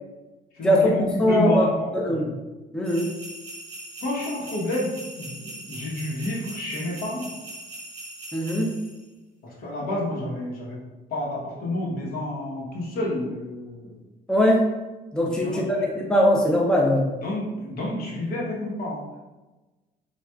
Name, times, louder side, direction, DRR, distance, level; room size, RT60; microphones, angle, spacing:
voice 1, 0.5-2.3 4.0-7.3 9.4-10.8 11.1-14.0 15.4-15.8 17.2-19.0, left 1 dB, 65° left, -4 dB, 1.1 m, -29 dB
voice 2, 1.2-1.7 2.1-2.3 2.7-3.1 8.3-8.7 14.3-14.7 15.1-17.1, equal, 5° left, -2 dB, 0.5 m, -20 dB
sound 1, 2.8-9.0, right 2 dB, 40° right, 0.8 m, -40 dB
4.0 x 2.4 x 2.3 m, 1.1 s
cardioid pair, 110°, 17 cm